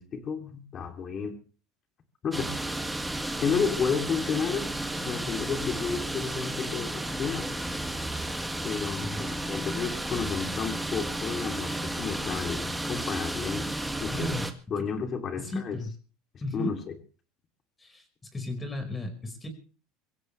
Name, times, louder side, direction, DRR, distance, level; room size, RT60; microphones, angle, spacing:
voice 1, 0.0-1.4 2.2-2.5 3.4-4.7 5.0-7.5 8.6-13.7 14.0-14.3 14.7-15.8 16.5-16.9, left 6 dB, 35° left, 6 dB, 3.0 m, -31 dB
sound 1, 2.3-14.5, right 1 dB, 5° right, 1.7 m, -33 dB
voice 2, 14.1-14.5 14.8-14.9 15.4-15.9 16.4-16.8 17.8-18.0 18.3-19.5, left 1 dB, 15° left, 6 dB, 5.2 m, -34 dB
23.5 x 16.0 x 3.3 m, 0.37 s
supercardioid pair, 115°, 0 cm